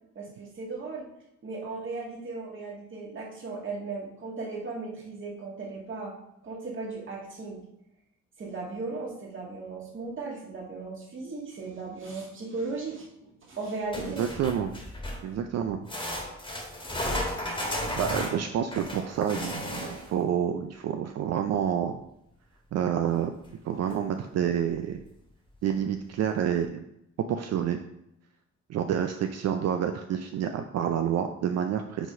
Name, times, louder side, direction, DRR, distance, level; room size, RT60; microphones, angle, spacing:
voice 1, 0.2-1.1 1.4-6.1 6.4-7.6 8.4-13.1 13.4-14.2 15.3-15.4, right 3 dB, 40° right, -2 dB, 1.8 m, -36 dB
sound 1, 13.9-15.3 15.9-20.2 23.4-23.5 23.9-24.0 24.7-24.8, left 1 dB, 15° left, 1.6 m, -34 dB
voice 2, 14.0-14.8 15.2-15.9 17.7-22.0 22.7-23.3 23.6-25.0 25.6-26.8 27.3-27.8 28.7-32.1, right 9 dB, 60° right, 6 dB, 0.5 m, -28 dB
5.0 x 4.0 x 5.0 m, 0.81 s
cardioid pair, 90°, 30 cm